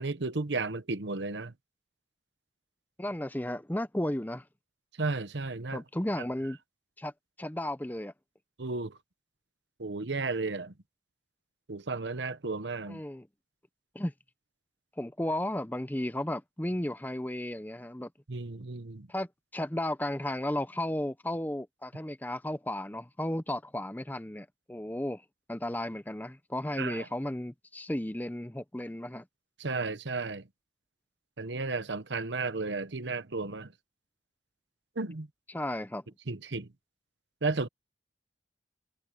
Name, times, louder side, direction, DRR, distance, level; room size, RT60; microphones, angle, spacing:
voice 1, 0.0-1.5 5.0-5.8 8.6-9.0 9.8-10.7 11.7-13.0 18.3-19.1 26.8-27.1 29.6-30.5 31.4-33.7 35.0-35.3 36.3-36.7 37.4-37.7, right 3 dB, 90° right, 1.1 m, -33 dB
voice 2, 3.0-4.4 5.7-6.6 7.0-7.1 7.4-8.1 12.9-13.3 13.9-14.1 15.0-18.1 19.1-25.2 25.5-29.2 35.5-36.0, left 1 dB, 10° left, 0.7 m, -34 dB
head